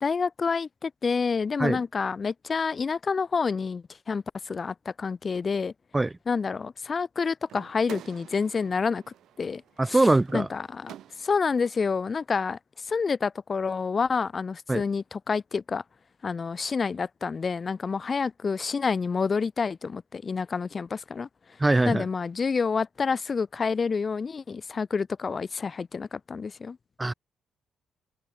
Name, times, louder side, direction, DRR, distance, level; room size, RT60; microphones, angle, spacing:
voice 1, 0.0-5.7 6.3-9.0 9.4-9.6 9.9-10.0 10.3-10.9 11.2-15.8 16.2-21.3 21.8-26.8, left 5 dB, 35° left, 1.5 m, -28 dB
sound 1, 7.5-11.6, right 11 dB, 75° right, 4.8 m, -47 dB
voice 2, 9.8-10.5 14.7-14.8 21.6-22.1 27.0-27.1, right 2 dB, 15° right, 1.0 m, -22 dB
cardioid pair, 90°, 0 cm